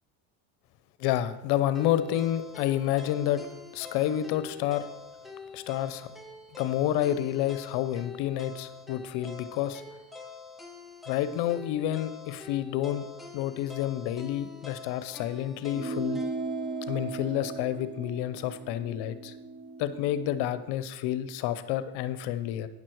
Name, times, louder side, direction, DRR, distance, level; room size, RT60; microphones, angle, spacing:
voice 1, 1.0-3.4 3.7-4.9 5.5-6.1 6.5-9.8 11.1-13.1 13.3-16.2 16.9-19.3 19.8-22.7, left 12 dB, 65° left, 13 dB, 0.8 m, -29 dB
sound 1, 1.7-17.8, left 5 dB, ahead, 1.1 m, -46 dB
sound 2, 15.7-20.5, right 3 dB, 30° right, 0.7 m, -37 dB
9.7 x 6.1 x 4.5 m, 0.98 s
supercardioid pair, 95°, 43 cm